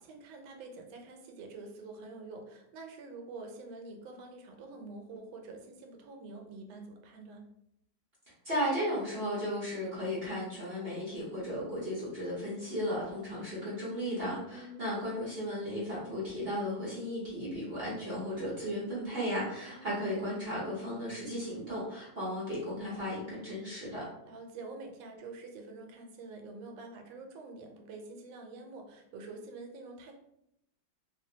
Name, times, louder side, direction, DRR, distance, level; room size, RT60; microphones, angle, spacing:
voice 1, 0.1-7.5 14.5-14.9 19.6-19.9 24.3-30.1, right 3 dB, 85° right, 3 dB, 1.3 m, -47 dB
voice 2, 8.4-24.0, equal, 50° right, -7 dB, 0.7 m, -35 dB
2.8 x 2.7 x 2.6 m, 0.80 s
omnidirectional pair, 2.1 m